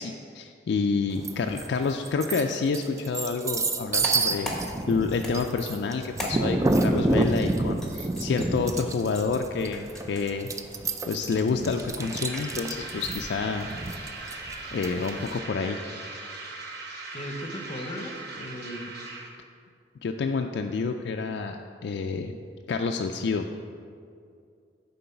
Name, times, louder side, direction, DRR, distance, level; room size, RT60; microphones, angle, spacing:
voice 1, 0.0-4.5 4.9-10.5 11.0-13.7 14.7-15.8 20.0-22.4 22.7-23.5, left 4 dB, 60° left, 4 dB, 0.3 m, -28 dB
sound 1, 1.2-1.7 2.1-15.3, right 2 dB, 15° right, 0.3 m, -28 dB
sound 2, 3.8-15.6, equal, 5° left, 1.1 m, -43 dB
sound 3, 11.7-19.3, right 3 dB, 55° right, 1.0 m, -40 dB
voice 2, 17.1-18.9, equal, 30° left, 4 dB, 0.8 m, -37 dB
9.2 x 3.9 x 5.7 m, 2.3 s
head